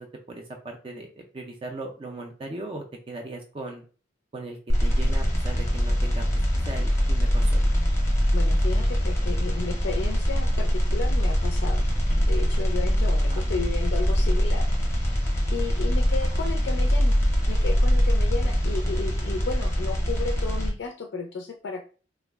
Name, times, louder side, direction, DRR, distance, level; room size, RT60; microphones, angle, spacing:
voice 1, 0.0-3.8 4.3-6.2 6.7-7.7 13.3-13.4 18.4-18.5, right 2 dB, 30° right, 2 dB, 0.3 m, -38 dB
sound 1, 4.7-20.7, equal, 15° left, 0.6 m, -23 dB
voice 2, 8.3-11.8 12.1-15.1 15.5-17.2 17.5-21.8, left 4 dB, 65° left, 3 dB, 0.4 m, -33 dB
2.2 x 2.0 x 3.3 m, 0.38 s
head